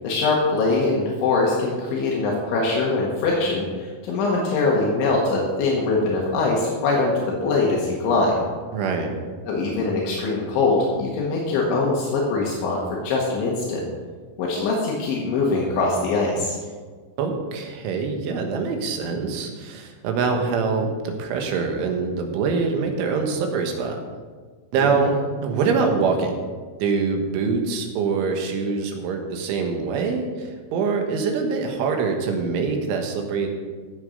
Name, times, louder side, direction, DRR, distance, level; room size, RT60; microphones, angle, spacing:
voice 1, 0.0-8.4 9.5-13.8 14.4-16.6 25.0-25.1, left 3 dB, 75° left, -3 dB, 3.8 m, -22 dB
voice 2, 8.7-9.1 17.2-24.0 24.7-25.2 25.4-26.4 26.8-33.5, right 5 dB, 80° right, 3 dB, 3.8 m, -24 dB
15.5 x 7.5 x 5.3 m, 1.5 s
omnidirectional pair, 5.5 m